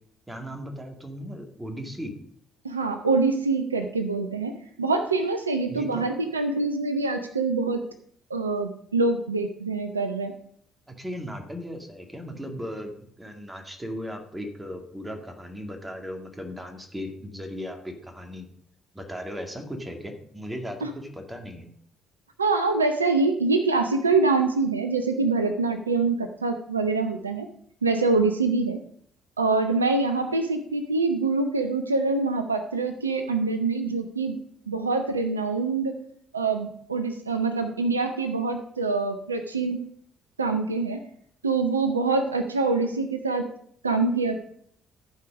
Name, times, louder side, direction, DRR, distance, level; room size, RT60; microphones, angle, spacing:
voice 1, 0.3-2.1 5.7-6.1 10.9-18.5 18.9-21.7, equal, 15° right, 4 dB, 2.3 m, -37 dB
voice 2, 2.6-7.8 8.3-10.3 20.8-20.9 22.4-27.5 27.8-28.8 29.4-34.4 34.7-35.9 36.3-39.8 40.4-41.0 41.4-43.5 43.8-44.4, right 3 dB, 85° right, 8 dB, 0.5 m, -25 dB
14.5 x 4.9 x 5.2 m, 0.65 s
figure-of-eight pair, 45°, 0 cm